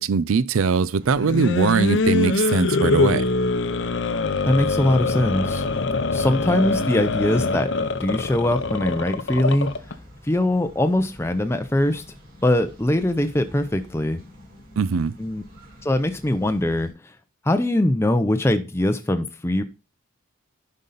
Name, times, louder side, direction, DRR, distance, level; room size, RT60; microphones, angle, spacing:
voice 1, 0.0-3.2 14.8-15.1, right 5 dB, 80° right, 0.5 m, -21 dB
sound 1, 1.0-16.9, left 1 dB, 45° right, 5.7 m, -46 dB
sound 2, 1.2-9.9, left 3 dB, 60° left, 0.7 m, -23 dB
voice 2, 4.5-5.6 6.1-7.7 8.0-9.7 10.2-12.0 12.4-14.2 15.2-15.4 15.8-16.9 17.5-19.6, left 1 dB, 10° left, 0.5 m, -22 dB
10.5 x 5.4 x 4.0 m
head